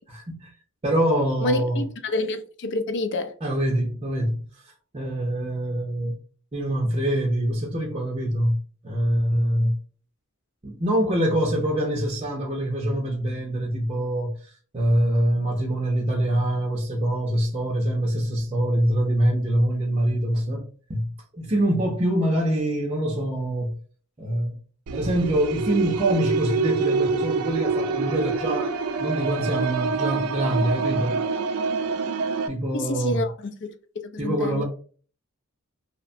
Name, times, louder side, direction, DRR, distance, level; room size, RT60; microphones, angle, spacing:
voice 1, 0.1-0.5 0.8-1.8 3.4-4.4 4.9-6.2 6.5-8.6 8.8-9.8 10.6-23.8 24.2-24.6 24.9-28.7 29.0-31.2 32.5-33.2 34.2-34.6, right 1 dB, 25° right, 0.5 m, -24 dB
voice 2, 1.4-3.3 32.7-34.6, left 2 dB, 55° left, 0.4 m, -28 dB
sound 1, 24.9-32.5, right 4 dB, 85° right, 0.4 m, -26 dB
2.8 x 2.1 x 2.6 m
head